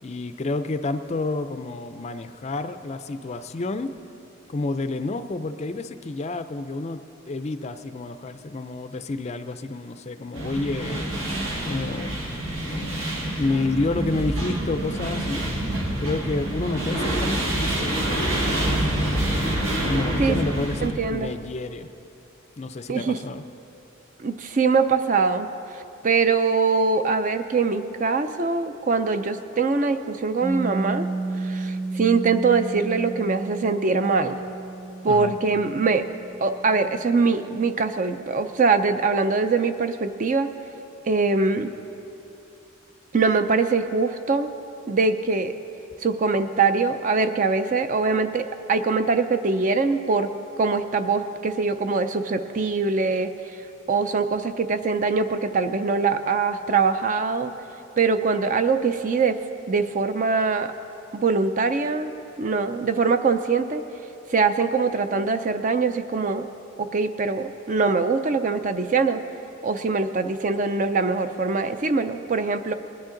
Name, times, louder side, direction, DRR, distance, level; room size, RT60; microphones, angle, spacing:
voice 1, 0.0-3.9 4.5-7.0 7.3-11.1 11.6-12.2 12.6-15.5 16.0-18.6 19.0-19.3 19.8-21.9 22.6-23.4 35.1-35.4, left 2 dB, 35° left, 10 dB, 0.4 m, -29 dB
sound 1, 10.3-20.9, right 1 dB, 90° right, 1.8 m, -27 dB
voice 2, 20.8-21.3 22.9-23.2 24.2-31.1 31.4-34.4 35.0-36.0 36.4-40.5 41.1-41.7 43.1-44.5 44.9-45.5 46.0-48.4 48.7-50.3 50.6-53.3 53.9-57.5 58.0-59.4 59.7-60.7 61.1-62.1 62.4-63.8 64.3-66.5 66.8-69.2 69.6-72.7, right 4 dB, 40° right, 9 dB, 0.5 m, -23 dB
Piano, 30.4-37.7, right 3 dB, 15° right, 0.9 m, -33 dB
20.0 x 10.0 x 3.8 m, 2.8 s
head